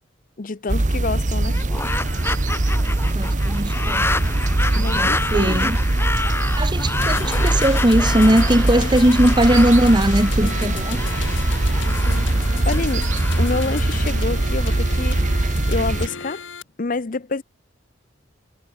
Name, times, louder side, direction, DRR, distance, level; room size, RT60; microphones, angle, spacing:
voice 1, 0.4-1.6 4.8-5.6 8.7-8.9 10.4-10.7 12.1-12.3 12.6-13.1 13.4-15.2 15.7-16.4 16.8-17.4, left 3 dB, 45° left, 0.7 m, -27 dB
sound 1, 0.7-16.1, right 2 dB, 40° right, 1.0 m, -21 dB
sound 2, 1.4-14.6, left 2 dB, 15° left, 3.0 m, -29 dB
voice 2, 3.1-4.1 4.7-5.8 6.6-11.0, right 1 dB, 25° right, 2.1 m, -19 dB
sound 3, 7.0-16.6, left 5 dB, 90° left, 1.9 m, -35 dB
head